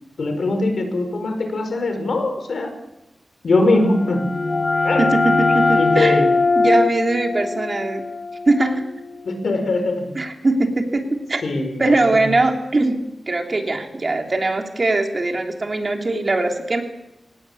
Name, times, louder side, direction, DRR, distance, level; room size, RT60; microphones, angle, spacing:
voice 1, 0.2-2.7 3.4-4.3 4.8-5.1 5.8-6.4 9.2-10.1 11.4-12.3, left 2 dB, 75° left, 7 dB, 4.9 m, -21 dB
sound 1, 3.8-9.3, left 3 dB, 35° left, 1.0 m, -21 dB
voice 2, 5.0-6.2 6.5-8.0 8.5-8.8 10.1-11.4 11.8-16.8, right 2 dB, 40° right, 4 dB, 3.2 m, -21 dB
24.5 x 19.0 x 8.6 m, 0.91 s
wide cardioid pair, 110°, 0 cm